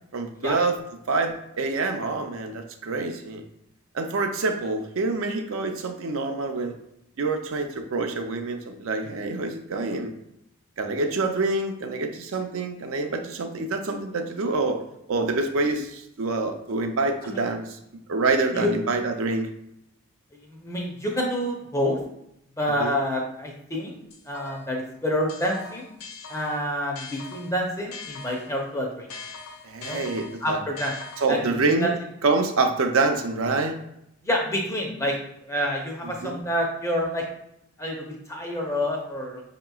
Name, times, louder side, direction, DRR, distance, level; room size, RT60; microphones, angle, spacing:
voice 1, 0.1-0.8 1.1-3.4 3.9-6.7 7.2-10.1 10.8-14.8 15.1-17.8 18.1-19.5 22.8-23.0 29.6-30.6 31.2-31.9 32.2-33.8 36.0-36.4, right 3 dB, 65° right, 5 dB, 0.5 m, -26 dB
voice 2, 20.5-22.0 22.6-23.9 24.3-25.9 26.3-29.1 29.8-30.0 30.4-30.9 31.3-31.4 31.8-31.9 34.2-35.2 35.4-37.2 37.8-39.4, equal, 15° left, 0 dB, 0.5 m, -28 dB
sound 1, 24.1-24.8 25.3-28.6 29.1-31.6, left 4 dB, 80° left, 0.7 m, -41 dB
5.5 x 2.9 x 2.3 m, 0.79 s
head